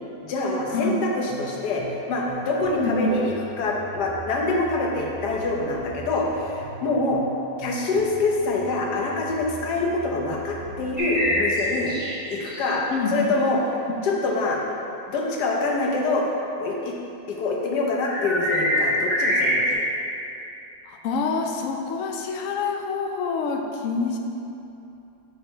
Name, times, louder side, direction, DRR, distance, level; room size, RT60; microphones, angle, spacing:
voice 1, 0.2-7.2 7.6-12.0 12.3-13.6 14.0-14.6 15.1-16.3 16.6-16.9 17.3-19.8, left 3 dB, 65° left, -1 dB, 1.4 m, -25 dB
sound 1, 1.3-11.9, right 5 dB, 75° right, 1.7 m, -42 dB
voice 2, 2.8-3.1 12.9-13.3 14.1-14.2 20.9-24.2, left 4 dB, 90° left, 2 dB, 0.6 m, -26 dB
sound 2, 11.0-12.7 18.0-19.7, equal, 5° right, 1.0 m, -24 dB
6.4 x 4.7 x 4.5 m, 2.8 s
omnidirectional pair, 2.0 m